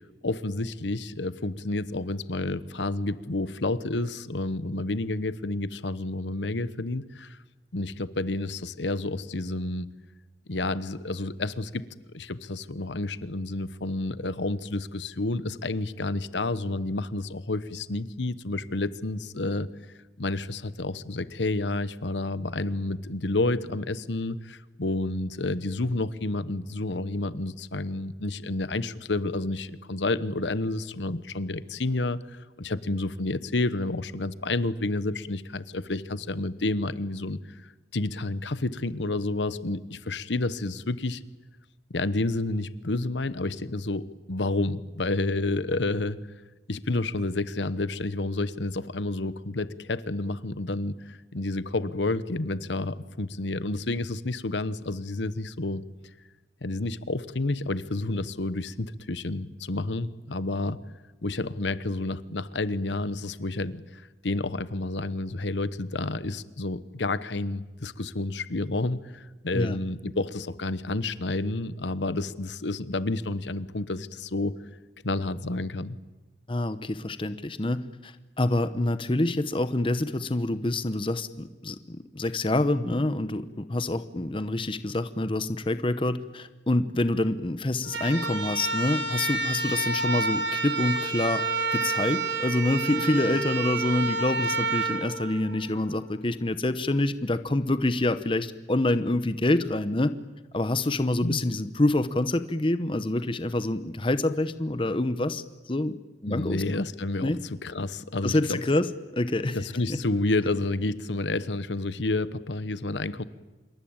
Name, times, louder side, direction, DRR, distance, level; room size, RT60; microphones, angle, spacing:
voice 1, 0.2-7.4 7.7-9.9 10.5-11.8 12.1-19.7 20.2-41.2 41.9-46.2 46.7-55.8 56.6-60.8 61.2-74.6 75.0-76.0 101.2-101.4 106.3-107.4 107.6-108.6 109.5-113.2, left 2 dB, 80° left, 15 dB, 1.1 m, -30 dB
voice 2, 76.5-91.4 91.7-100.1 100.5-105.4 105.7-106.0 106.2-106.6 107.2-107.4 108.2-108.9 109.1-109.6 109.9-110.0, left 2 dB, 30° left, 12 dB, 0.9 m, -26 dB
sound 1, 87.8-96.0, right 3 dB, 80° right, 3.2 m, -29 dB
27.0 x 23.0 x 8.9 m, 1.2 s
head